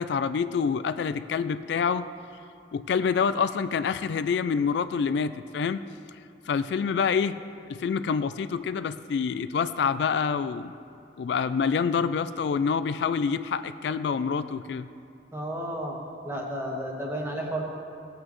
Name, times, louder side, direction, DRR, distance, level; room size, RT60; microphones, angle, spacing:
voice 1, 0.0-2.0 2.7-5.8 6.5-7.4 7.7-10.7 11.2-14.9, left 6 dB, 70° left, 12 dB, 0.3 m, -27 dB
voice 2, 15.3-16.0 16.2-17.6, right 1 dB, 15° right, -1 dB, 1.3 m, -32 dB
16.5 x 8.5 x 3.1 m, 2.7 s
head